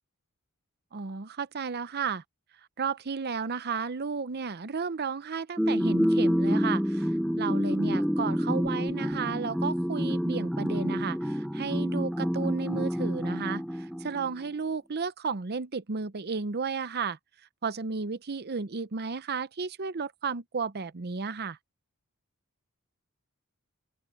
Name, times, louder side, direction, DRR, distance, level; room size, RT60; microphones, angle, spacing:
voice 1, 0.9-2.2 2.8-7.1 7.4-17.2 17.6-21.6, right 5 dB, 45° right, 0.7 m, -33 dB
sound 1, 5.6-14.3, equal, ahead, 0.6 m, -28 dB
open air
head